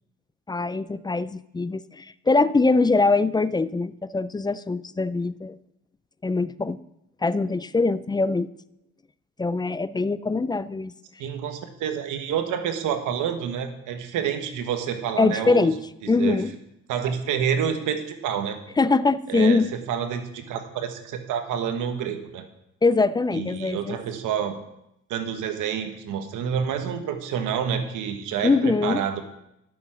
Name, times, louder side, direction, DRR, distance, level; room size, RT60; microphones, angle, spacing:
voice 1, 0.5-5.6 6.2-6.8 7.2-8.5 9.4-10.9 15.2-15.8 16.1-16.5 18.8-19.7 22.8-24.0 28.4-29.0, left 3 dB, 15° left, 16 dB, 0.4 m, -22 dB
voice 2, 11.2-15.7 16.0-16.4 16.9-18.6 19.3-22.4 23.3-24.6 25.1-29.2, right 8 dB, 90° right, 7 dB, 1.5 m, -28 dB
12.5 x 7.1 x 6.2 m, 0.82 s
cardioid pair, 90°, 30 cm